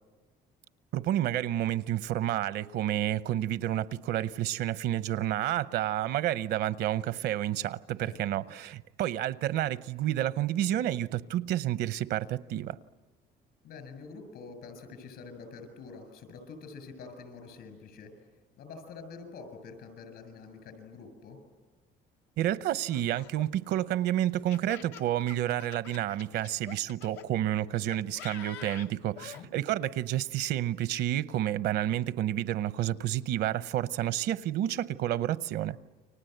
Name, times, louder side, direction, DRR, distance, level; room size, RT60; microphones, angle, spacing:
voice 1, 0.9-12.8 22.4-35.8, right 12 dB, 75° right, 0.8 m, -30 dB
voice 2, 13.6-18.1 18.6-21.4 29.2-29.5, left 4 dB, 75° left, 7.1 m, -46 dB
Laughter, 22.9-27.3 27.9-29.4, left 8 dB, 90° left, 1.0 m, -47 dB
29.5 x 24.5 x 8.0 m
cardioid pair, 110°, 17 cm